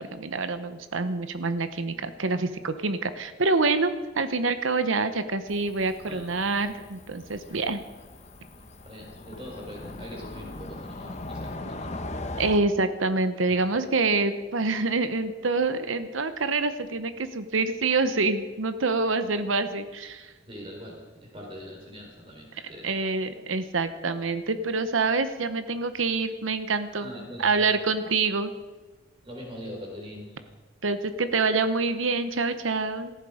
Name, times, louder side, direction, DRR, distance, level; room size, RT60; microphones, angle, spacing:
voice 1, 0.0-7.8 12.4-20.3 22.8-27.1 27.4-28.5 30.8-33.1, right 3 dB, 85° right, 10 dB, 1.0 m, -26 dB
Cricket / Motor vehicle (road), 5.5-12.6, left 2 dB, 35° left, 1.0 m, -40 dB
voice 2, 8.6-12.1 13.5-13.6 19.2-19.3 20.5-23.0 27.0-27.6 29.2-30.5, equal, 25° right, 0 dB, 4.4 m, -42 dB
18.0 x 14.5 x 5.1 m, 1.3 s
head